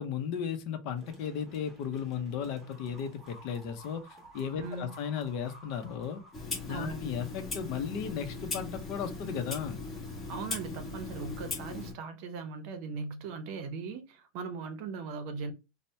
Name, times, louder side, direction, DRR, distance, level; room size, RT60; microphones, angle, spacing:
voice 1, 0.0-4.1 4.3-6.2 6.6-9.8, left 7 dB, 55° left, 0.6 m, -35 dB
sound 1, 1.0-7.0, right 1 dB, 5° right, 1.2 m, -54 dB
voice 2, 4.6-4.9 6.7-7.1 10.3-15.5, right 4 dB, 55° right, 0.6 m, -39 dB
Clock, 6.3-11.9, left 3 dB, 20° left, 1.2 m, -39 dB
2.7 x 2.1 x 3.2 m
supercardioid pair, 145°, 0 cm